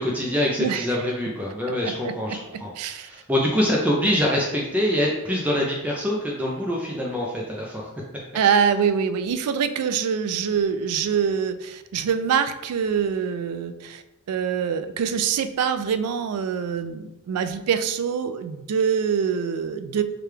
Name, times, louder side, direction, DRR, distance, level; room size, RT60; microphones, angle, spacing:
voice 1, 0.0-7.9, left 1 dB, 5° right, -3 dB, 0.4 m, -25 dB
voice 2, 1.8-3.1 8.3-20.0, right 7 dB, 80° right, 10 dB, 0.3 m, -25 dB
4.8 x 2.3 x 3.1 m, 0.98 s
head